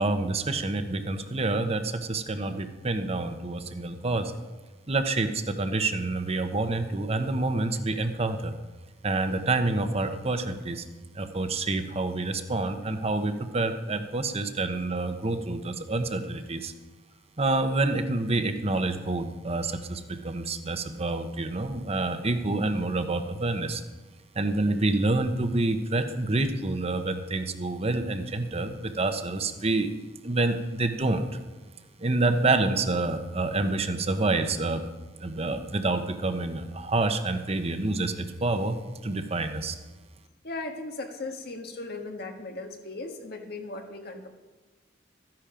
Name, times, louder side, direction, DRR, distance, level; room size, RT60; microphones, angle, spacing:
voice 1, 0.0-4.3 4.9-8.6 9.0-10.8 11.1-16.7 17.4-23.8 24.3-29.9 30.2-31.3 32.0-34.8 35.2-39.8, right 2 dB, 35° right, 8 dB, 0.9 m, -27 dB
voice 2, 40.4-44.3, left 2 dB, 60° left, 4 dB, 1.5 m, -37 dB
14.0 x 10.5 x 5.0 m, 1.3 s
head